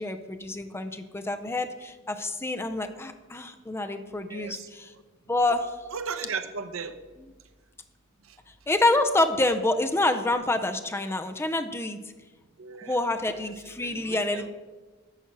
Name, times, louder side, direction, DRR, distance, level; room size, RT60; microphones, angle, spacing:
voice 1, 0.0-4.9 5.3-5.7 8.7-12.0 12.9-14.5, left 2 dB, 10° left, 7 dB, 0.6 m, -27 dB
voice 2, 4.2-5.0 5.9-7.0 8.2-8.4 12.6-13.0 13.3-14.5, right 5 dB, 80° right, 8 dB, 0.7 m, -37 dB
10.5 x 4.4 x 7.1 m, 1.3 s
head